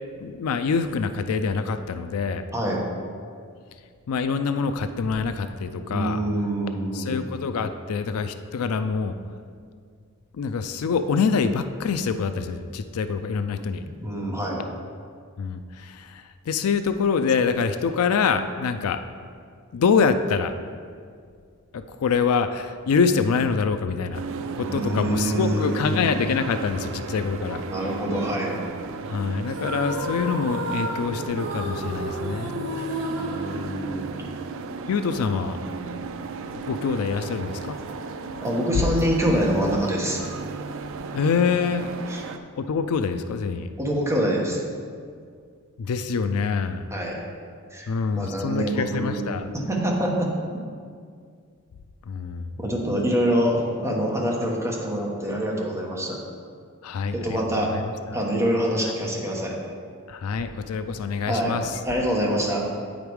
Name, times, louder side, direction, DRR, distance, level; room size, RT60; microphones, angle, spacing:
voice 1, 0.2-2.4 4.1-6.2 6.9-9.2 10.3-13.9 15.4-19.0 19.7-20.5 21.7-24.2 24.6-27.6 29.1-32.7 34.9-35.6 35.9-36.0 36.5-37.8 41.1-41.9 42.6-43.7 45.8-46.9 47.9-49.6 52.1-52.5 56.8-57.8 60.1-61.8, left 5 dB, 70° left, 10 dB, 0.4 m, -25 dB
voice 2, 2.5-2.8 5.9-7.2 14.0-14.6 24.6-25.8 27.7-28.6 33.1-34.1 38.4-40.2 42.1-42.2 43.8-44.6 46.9-47.2 47.7-50.3 52.6-56.2 57.1-57.7 58.1-59.5 61.3-61.6 61.8-62.7, equal, 15° right, -3 dB, 1.2 m, -25 dB
sound 1, 24.1-42.4, right 4 dB, 60° right, 0.4 m, -35 dB
sound 2, 29.5-34.3, equal, 80° right, 1.4 m, -32 dB
8.5 x 5.2 x 4.7 m, 2.1 s
head